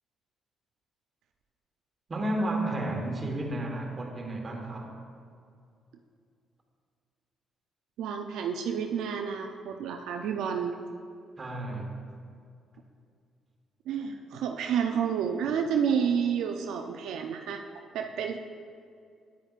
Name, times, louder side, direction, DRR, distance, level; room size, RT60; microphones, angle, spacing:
voice 1, 2.1-5.0 11.4-12.0, right 1 dB, 35° right, 1 dB, 1.3 m, -32 dB
voice 2, 8.0-10.7 13.9-17.6 17.9-18.4, right 7 dB, 85° right, 4 dB, 0.4 m, -30 dB
9.2 x 8.8 x 2.4 m, 2.3 s
cardioid pair, 90°, 0 cm